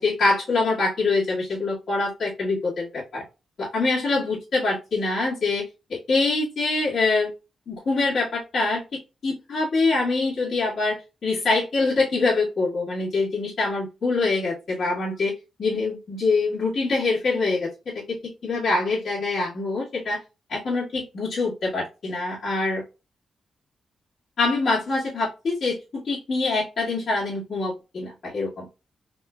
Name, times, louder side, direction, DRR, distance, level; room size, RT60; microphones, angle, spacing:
voice 1, 0.0-3.2 3.6-7.3 7.7-11.0 11.2-15.3 15.6-20.2 20.5-22.8 24.4-28.7, left 3 dB, 55° left, -9 dB, 1.8 m, -25 dB
3.7 x 3.1 x 2.3 m, 0.28 s
wide cardioid pair, 145°, 0 cm